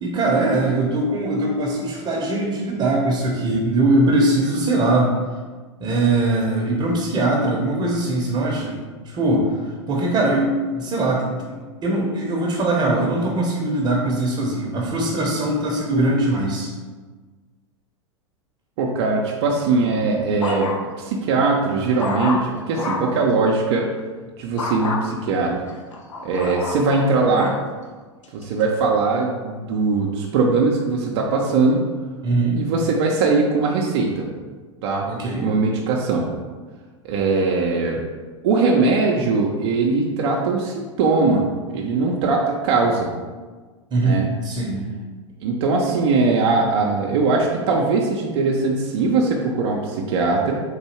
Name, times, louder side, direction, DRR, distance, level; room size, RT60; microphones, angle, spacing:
voice 1, 0.0-5.1 5.8-8.8 9.0-11.6 11.8-16.7 32.2-32.6 35.1-35.5 43.9-44.8, right 2 dB, 30° right, -2 dB, 0.9 m, -21 dB
voice 2, 18.8-20.7 21.0-23.9 24.4-25.5 26.2-27.5 28.3-31.8 32.6-34.3 34.8-35.1 35.4-36.3 37.0-38.0 38.4-43.1 44.0-44.3 45.4-50.6, right 3 dB, 60° right, -1 dB, 0.6 m, -20 dB
sound 1, 19.7-21.1 21.5-23.2 24.6-25.0 25.7-27.6 28.2-28.6, left 3 dB, 85° left, 0.6 m, -29 dB
3.9 x 2.6 x 4.4 m, 1.4 s
hypercardioid pair, 100°, 16 cm